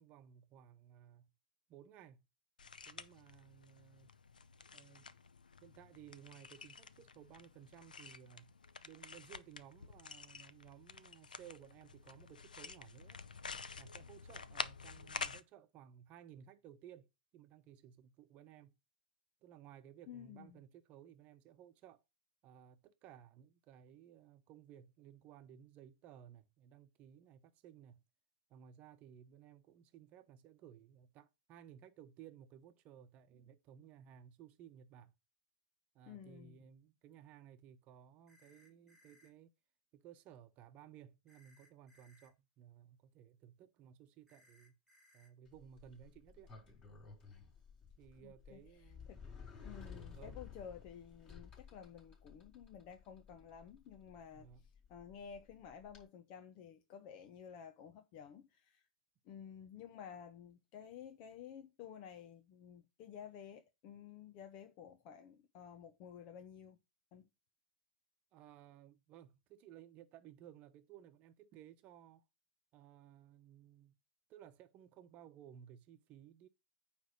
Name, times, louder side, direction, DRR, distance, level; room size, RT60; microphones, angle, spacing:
voice 1, 0.0-1.3 1.7-2.2 2.9-4.1 4.7-5.1 5.6-8.6 8.8-13.2 13.5-17.1 17.3-18.7 19.4-22.0 22.4-28.0 28.5-35.1 35.9-39.5 39.9-44.8 45.1-46.5 48.0-49.3 50.1-50.4 54.3-54.6 68.3-72.2 72.7-74.0 74.3-76.5, right 10 dB, 35° right, 1.1 m, -58 dB
sound 1, 2.6-15.4, left 5 dB, 90° left, 0.7 m, -49 dB
voice 2, 20.1-20.6 36.1-36.6 48.2-48.6 49.1-49.2 49.6-58.8 59.2-66.8 67.1-67.3, left 8 dB, 40° left, 1.0 m, -53 dB
sound 2, 38.3-39.3 41.3-42.3 44.3-45.3, left 1 dB, 10° right, 1.8 m, -68 dB
Sliding door, 45.5-56.0, left 6 dB, 25° left, 4.4 m, -55 dB
9.3 x 3.5 x 6.6 m
hypercardioid pair, 125°, 4 cm